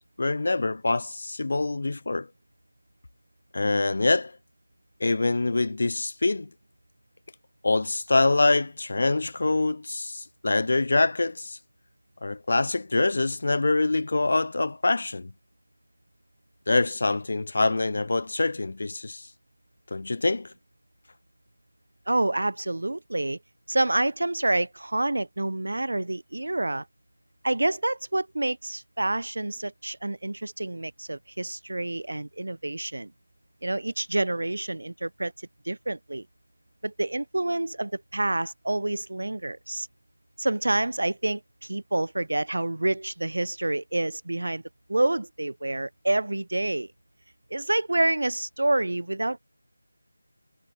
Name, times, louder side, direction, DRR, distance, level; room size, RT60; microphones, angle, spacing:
voice 1, 0.2-2.3 3.5-4.3 5.0-6.5 7.6-11.6 12.2-15.3 16.7-19.3 19.9-20.5, left 2 dB, 50° left, 0.4 m, -25 dB
voice 2, 22.1-23.4 23.7-26.9 27.4-33.1 33.6-36.3 36.8-39.9 40.4-44.6 44.9-46.9 47.5-49.4, right 2 dB, 70° right, 1.3 m, -28 dB
figure-of-eight pair, 170°, 0 cm